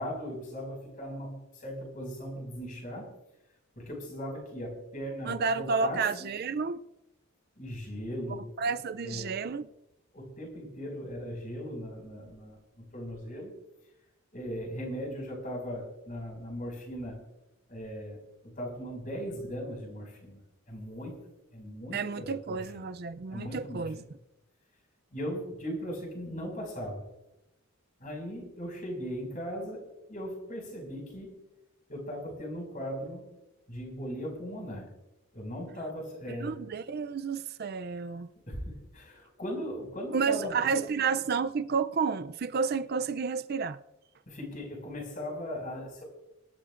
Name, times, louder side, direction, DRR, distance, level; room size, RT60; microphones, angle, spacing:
voice 1, 0.0-3.1 3.8-6.1 7.6-8.5 9.0-9.3 10.1-13.5 14.3-17.2 17.7-20.4 20.7-21.2 21.5-22.8 23.3-23.9 25.1-27.0 28.0-31.4 31.9-33.2 33.7-34.9 35.3-36.6 38.5-40.6 44.3-46.0, equal, 40° left, 5.8 m, -38 dB
voice 2, 5.3-6.8 8.6-9.7 21.9-24.0 36.4-38.3 40.1-43.8, right 5 dB, 50° right, 0.4 m, -30 dB
25.5 x 12.0 x 2.5 m
head